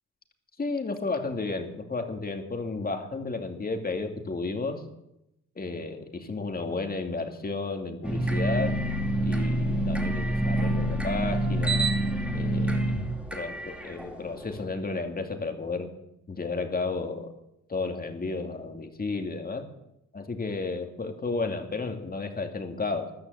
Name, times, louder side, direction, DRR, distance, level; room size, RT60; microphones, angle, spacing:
voice 1, 0.6-4.8 5.6-8.8 9.2-11.9 12.3-12.8 13.3-15.9 16.3-17.3 17.7-19.7 20.1-23.1, left 3 dB, 30° left, 5 dB, 2.5 m, -32 dB
sound 1, 8.0-14.6, right 1 dB, 5° right, 2.4 m, -27 dB
14.0 x 12.0 x 8.2 m, 0.85 s
cardioid pair, 90°, 30 cm